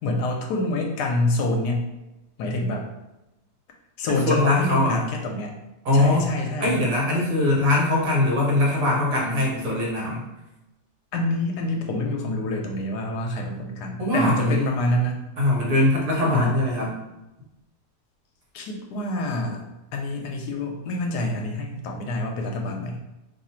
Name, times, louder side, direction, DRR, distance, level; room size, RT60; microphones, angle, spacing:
voice 1, 0.0-1.9 2.4-2.9 4.0-5.5 5.9-6.7 11.1-15.2 16.3-16.6 18.5-19.6 19.9-23.0, left 1 dB, 80° left, 1 dB, 1.1 m, -26 dB
voice 2, 4.2-5.0 5.8-6.3 6.6-10.2 14.0-14.7 15.4-16.9, left 1 dB, 60° right, -3 dB, 1.3 m, -21 dB
2.9 x 2.4 x 4.2 m, 0.96 s
omnidirectional pair, 1.8 m